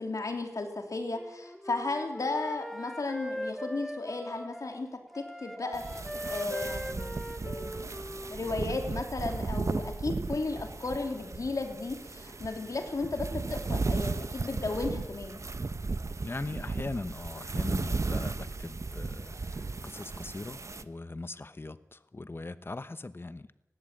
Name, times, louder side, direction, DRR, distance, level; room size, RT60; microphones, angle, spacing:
voice 1, 0.0-7.9 8.3-15.4, left 3 dB, 75° left, 5 dB, 3.0 m, -35 dB
Wind instrument woodwind instrument, 1.1-4.8 5.1-8.7, equal, ahead, 1.5 m, -40 dB
sound 1, 5.7-20.8, right 3 dB, 60° right, 0.9 m, -35 dB
voice 2, 16.2-19.3 19.8-23.5, left 2 dB, 40° left, 14 dB, 1.0 m, -40 dB
19.5 x 15.0 x 8.9 m, 0.94 s
wide cardioid pair, 55°, 6 cm